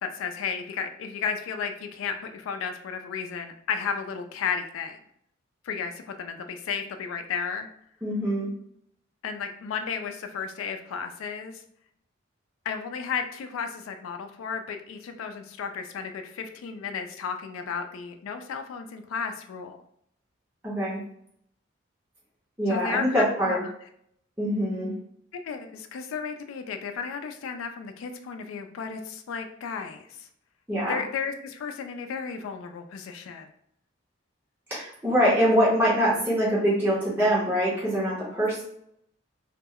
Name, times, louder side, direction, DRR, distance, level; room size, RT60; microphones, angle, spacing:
voice 1, 0.0-5.0 5.6-7.7 9.2-11.6 12.7-19.8 22.7-23.6 25.4-30.3 30.9-33.5, left 6 dB, 90° left, 6 dB, 0.3 m, -33 dB
voice 2, 8.0-8.5 20.6-21.0 22.6-23.6 24.4-24.9 30.7-31.0 34.7-38.6, equal, 10° right, -8 dB, 0.8 m, -24 dB
2.2 x 2.1 x 3.5 m, 0.70 s
head